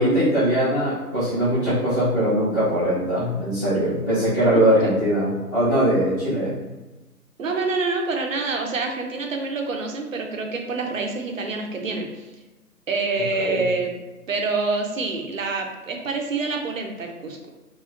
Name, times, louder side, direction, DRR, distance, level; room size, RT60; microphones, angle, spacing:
voice 1, 0.0-6.5 13.3-13.6, right 1 dB, 15° left, -18 dB, 0.6 m, -21 dB
voice 2, 7.4-12.3 12.9-13.9 14.3-17.5, right 3 dB, 60° right, 2 dB, 0.6 m, -26 dB
3.0 x 2.6 x 2.4 m, 1.1 s
figure-of-eight pair, 140°, 47 cm